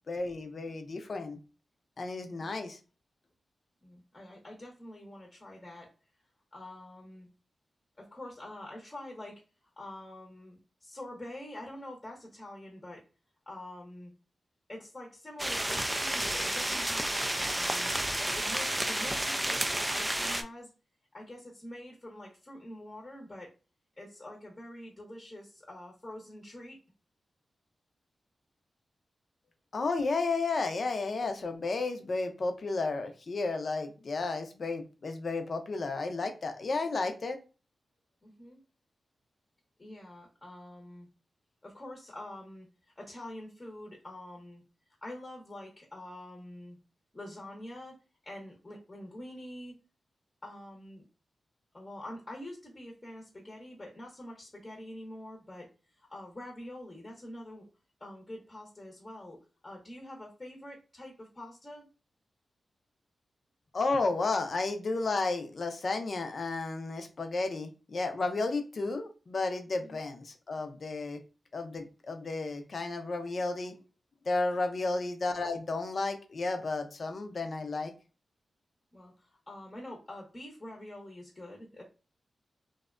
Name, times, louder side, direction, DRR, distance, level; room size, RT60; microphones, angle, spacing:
voice 1, 0.1-1.4 2.0-2.8 29.7-37.4 63.7-71.2 71.5-73.8 74.3-77.9, left 3 dB, 55° left, 6 dB, 0.5 m, -32 dB
voice 2, 3.8-5.9 6.5-7.3 8.0-9.4 9.8-13.0 13.5-14.1 14.7-20.7 21.1-23.5 24.0-26.8 38.2-38.6 39.8-41.1 41.6-42.7 43.0-44.6 45.0-46.8 47.1-48.0 48.2-49.8 50.4-51.0 51.7-55.7 56.0-57.7 58.0-61.9 69.8-70.0 78.9-81.8, left 1 dB, 25° left, 0 dB, 0.8 m, -46 dB
sound 1, 15.4-20.4, right 1 dB, 15° right, 0.3 m, -31 dB
2.7 x 2.1 x 2.4 m, 0.33 s
cardioid pair, 70°, 0 cm